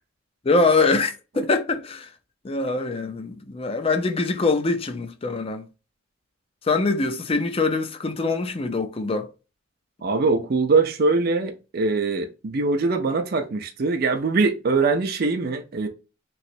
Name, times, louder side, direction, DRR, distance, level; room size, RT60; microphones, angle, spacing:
voice 1, 0.5-2.1 2.4-5.6 6.7-9.3, left 3 dB, 30° left, 0.4 m, -23 dB
voice 2, 10.0-15.9, right 3 dB, 50° right, 0.5 m, -22 dB
3.1 x 2.8 x 2.6 m
head